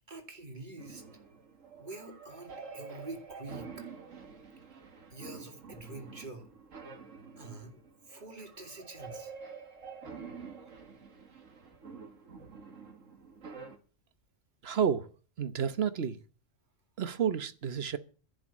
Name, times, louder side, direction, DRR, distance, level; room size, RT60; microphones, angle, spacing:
voice 1, 0.1-1.0 1.8-3.9 5.1-6.5 7.4-7.8 8.1-9.3, right 2 dB, 35° right, 2.6 m, -46 dB
sound 1, 0.8-13.8, right 5 dB, 75° right, 2.0 m, -48 dB
voice 2, 14.6-15.1 15.4-16.2 17.0-18.0, right 7 dB, 55° right, 1.2 m, -30 dB
11.5 x 7.9 x 8.6 m
omnidirectional pair, 1.3 m